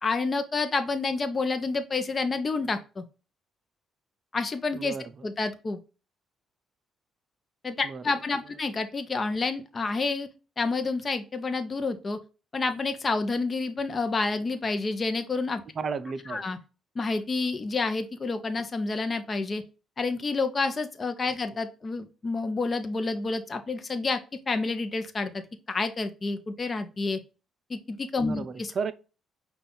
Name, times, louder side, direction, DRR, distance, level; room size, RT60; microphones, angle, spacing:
voice 1, 0.0-3.0 4.3-5.0 5.2-5.8 7.6-10.3 10.6-12.2 12.5-15.6 16.3-16.6 17.0-19.6 20.0-24.2 24.5-25.3 25.7-27.2 27.7-28.7, left 3 dB, 35° left, 0.7 m, -29 dB
voice 2, 4.7-5.2 7.8-8.0 15.8-16.5 21.5-21.6 28.3-28.9, right 5 dB, 45° right, 0.5 m, -34 dB
5.4 x 2.4 x 3.8 m
cardioid pair, 90°, 0 cm